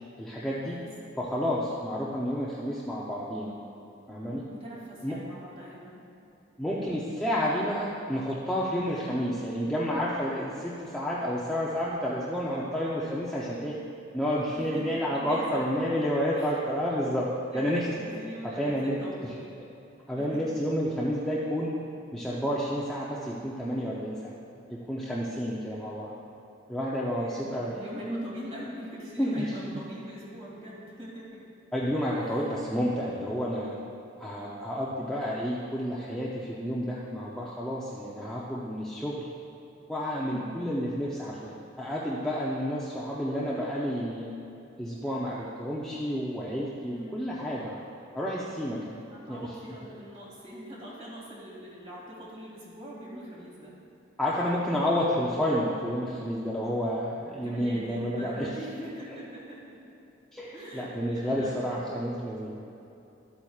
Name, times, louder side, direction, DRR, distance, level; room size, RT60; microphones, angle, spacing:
voice 1, 0.2-0.8 1.2-3.5 4.1-4.4 5.0-5.2 6.6-13.7 14.1-17.3 17.5-17.9 18.6-19.0 20.1-21.7 22.1-24.3 24.7-26.1 26.7-28.2 29.2-29.7 31.7-33.8 34.2-39.3 39.9-44.3 44.8-47.8 48.1-49.0 49.3-49.5 54.2-58.5 60.3-62.6, equal, 5° left, -7 dB, 0.6 m, -30 dB
voice 2, 4.1-6.0 14.6-15.6 16.4-16.5 17.5-19.4 20.2-20.4 27.2-31.4 32.2-32.6 40.3-40.6 46.9-47.2 49.0-53.7 57.4-59.8 60.5-62.0, equal, 30° right, -6 dB, 2.1 m, -43 dB
12.5 x 8.8 x 2.4 m, 2.8 s
head